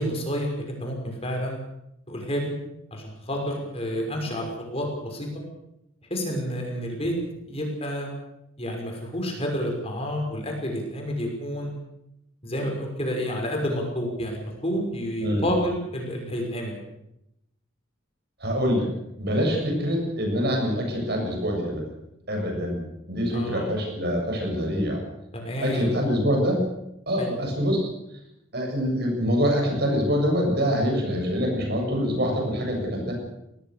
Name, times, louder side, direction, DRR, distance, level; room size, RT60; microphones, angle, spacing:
voice 1, 0.0-1.6 2.1-2.5 2.9-5.3 6.1-7.1 7.5-8.1 8.6-11.7 12.4-16.7 23.3-23.7 25.3-25.9 27.2-27.3 27.6-27.7, equal, 30° left, 1 dB, 6.0 m, -29 dB
voice 2, 15.2-15.5 18.4-18.9 19.2-21.8 22.3-22.8 23.1-25.0 25.6-26.6 27.1-27.9 28.5-33.1, equal, 50° right, 1 dB, 7.9 m, -25 dB
25.0 x 19.0 x 6.8 m, 0.84 s
head